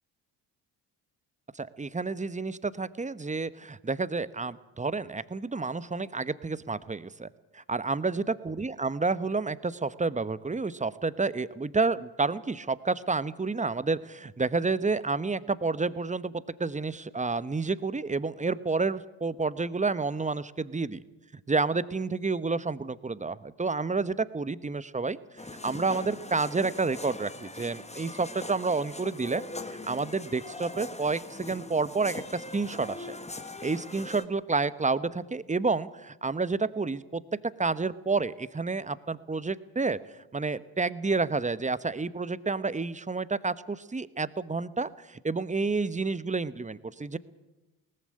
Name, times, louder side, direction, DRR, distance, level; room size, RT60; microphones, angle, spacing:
voice 1, 1.5-7.3 7.5-16.3 16.6-21.0 21.5-25.2 25.6-29.4 29.7-33.2 33.6-37.2 37.6-40.0 40.3-47.2, right 4 dB, 15° right, 16 dB, 1.0 m, -30 dB
sound 1, 25.4-34.3, left 2 dB, 15° left, 1.6 m, -41 dB
19.0 x 14.5 x 9.9 m, 1.0 s
hypercardioid pair, 50°, 47 cm